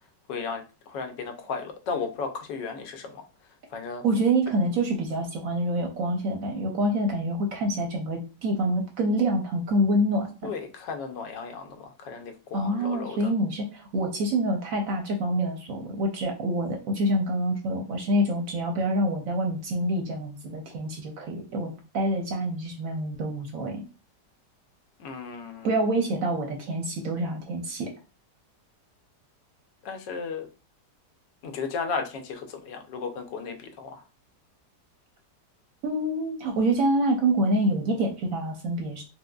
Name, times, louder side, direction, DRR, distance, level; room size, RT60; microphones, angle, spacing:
voice 1, 0.3-3.2 3.7-4.0 10.4-13.3 25.0-25.9 29.8-30.5 31.4-34.0, left 5 dB, 90° left, 6 dB, 1.3 m, -35 dB
voice 2, 4.0-10.5 12.5-23.8 25.6-27.9 35.8-39.0, right 1 dB, 65° right, 3 dB, 0.9 m, -26 dB
4.6 x 2.1 x 2.2 m, 0.32 s
omnidirectional pair, 1.8 m